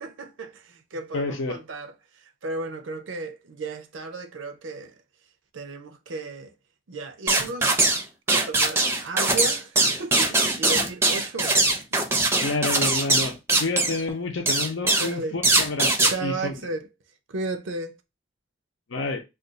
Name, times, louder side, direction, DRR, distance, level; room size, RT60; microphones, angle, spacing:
voice 1, 0.0-4.9 5.5-6.5 6.9-7.9 8.3-12.1 15.0-15.4 16.1-16.9 17.3-18.0, right 2 dB, 85° right, 0.6 m, -34 dB
voice 2, 1.1-1.6 12.4-16.6 18.9-19.2, left 3 dB, 90° left, 0.7 m, -29 dB
sound 1, 7.3-8.0 8.3-14.0 14.5-15.1 15.4-16.1, right 2 dB, 15° right, 0.5 m, -21 dB
2.5 x 2.3 x 3.8 m
head